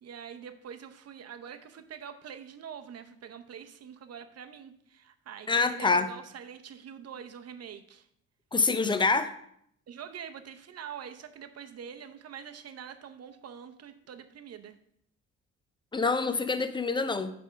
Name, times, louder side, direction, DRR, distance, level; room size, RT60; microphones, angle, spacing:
voice 1, 0.0-8.1 9.9-14.8, right 8 dB, 55° right, 8 dB, 0.8 m, -45 dB
voice 2, 5.5-6.1 8.5-9.3 15.9-17.3, left 4 dB, 15° left, 11 dB, 0.6 m, -26 dB
8.9 x 3.5 x 6.2 m, 0.71 s
cardioid pair, 90°, 30 cm